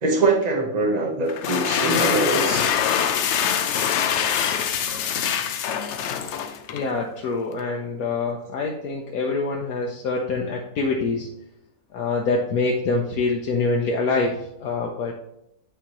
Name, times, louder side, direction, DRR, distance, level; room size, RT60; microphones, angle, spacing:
voice 1, 0.0-2.7, right 3 dB, 30° right, 1 dB, 1.1 m, -22 dB
sound 1, 1.3-6.9, left 8 dB, 65° left, 0.8 m, -24 dB
voice 2, 6.7-11.3 11.9-15.1, left 3 dB, 85° left, 0 dB, 1.3 m, -25 dB
8.6 x 4.4 x 3.0 m, 0.80 s
omnidirectional pair, 1.5 m